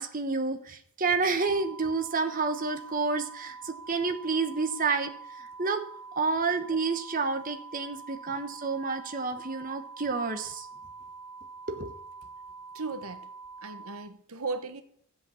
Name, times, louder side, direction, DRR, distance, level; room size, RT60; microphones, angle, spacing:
voice 1, 0.0-5.1 5.4-5.8 6.2-10.7 11.7-11.9, right 4 dB, 40° right, 1.0 m, -29 dB
sound 1, 1.4-14.0, right 4 dB, 15° right, 3.8 m, -45 dB
voice 2, 12.7-13.3 13.6-14.8, right 3 dB, 85° right, 1.2 m, -36 dB
13.0 x 8.2 x 7.1 m
head